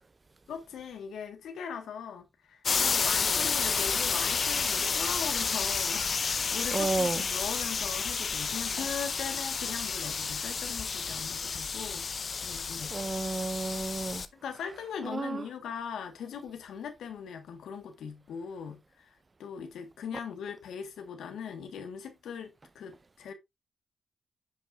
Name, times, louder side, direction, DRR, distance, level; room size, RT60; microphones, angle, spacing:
voice 1, 0.5-12.1 12.4-13.0 14.3-19.1 19.4-23.3, left 7 dB, 80° left, 1.3 m, -40 dB
sound 1, 2.6-14.3, left 5 dB, 60° left, 0.7 m, -30 dB
voice 2, 6.7-7.2 12.9-14.2 15.1-15.4, right 3 dB, 40° right, 0.6 m, -31 dB
10.5 x 5.6 x 2.4 m
supercardioid pair, 40°, 0 cm